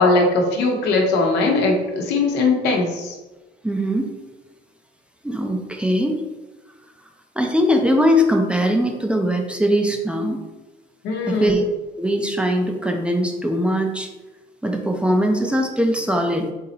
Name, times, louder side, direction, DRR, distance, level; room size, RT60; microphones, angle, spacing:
voice 1, 0.0-3.1 11.0-11.6, left 3 dB, 85° left, 1 dB, 0.9 m, -19 dB
voice 2, 3.6-4.1 5.2-6.2 7.4-10.4 11.2-11.6 12.0-14.1 14.6-16.5, equal, 5° right, 3 dB, 0.5 m, -20 dB
3.9 x 2.8 x 4.1 m, 1.1 s
cardioid pair, 110°, 17 cm